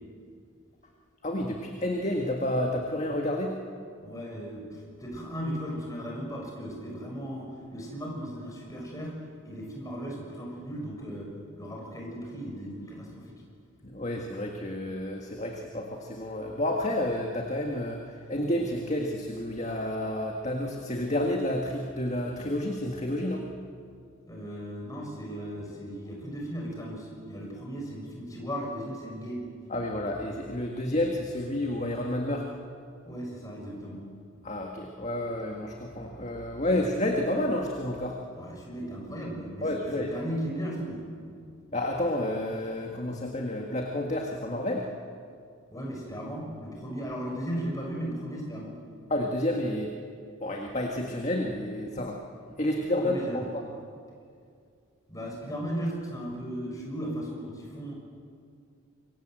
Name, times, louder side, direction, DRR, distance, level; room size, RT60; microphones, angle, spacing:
voice 1, 1.2-3.6 13.8-23.5 29.7-32.5 34.4-38.2 39.6-40.1 41.7-44.9 49.1-49.9 50.4-52.2 52.6-53.6, left 1 dB, 35° left, 1 dB, 1.8 m, -30 dB
voice 2, 4.0-11.3 11.6-13.4 24.3-29.4 33.0-34.0 38.3-39.7 40.0-41.1 45.7-48.8 53.0-53.5 55.1-57.9, equal, 15° left, -1 dB, 6.4 m, -36 dB
26.5 x 23.5 x 7.9 m, 2.3 s
head